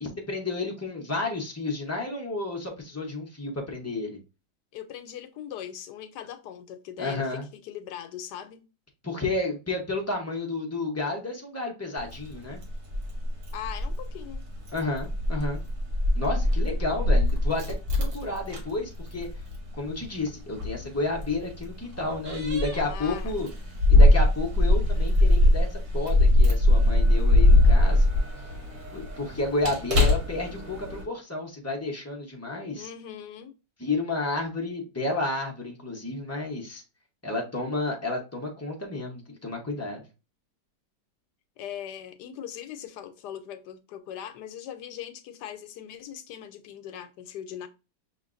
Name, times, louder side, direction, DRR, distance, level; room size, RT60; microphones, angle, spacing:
voice 1, 0.0-4.2 7.0-7.4 9.0-12.6 14.7-15.6 16.1-19.3 19.8-23.5 23.9-28.1 28.9-32.9 33.8-36.8 37.2-40.0, left 2 dB, 20° left, 0.4 m, -31 dB
voice 2, 4.7-8.6 13.5-14.4 22.7-23.3 32.7-33.5 41.6-47.7, left 10 dB, 75° left, 1.2 m, -40 dB
Keys jangling, 12.0-31.0, left 1 dB, 60° right, 1.7 m, -23 dB
5.7 x 2.9 x 2.5 m
omnidirectional pair, 1.9 m